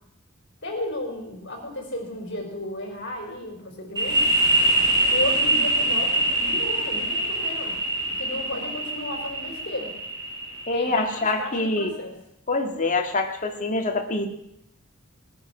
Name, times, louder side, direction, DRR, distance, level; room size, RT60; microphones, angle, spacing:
voice 1, 0.6-4.2 5.1-7.8 8.1-9.9 10.7-12.2, left 1 dB, 60° left, 1 dB, 5.6 m, -33 dB
sound 1, 4.0-11.4, right 1 dB, 20° right, 4.8 m, -24 dB
voice 2, 10.7-11.9 12.5-14.3, left 2 dB, 35° left, 3 dB, 2.1 m, -25 dB
20.0 x 9.9 x 6.2 m, 0.78 s
head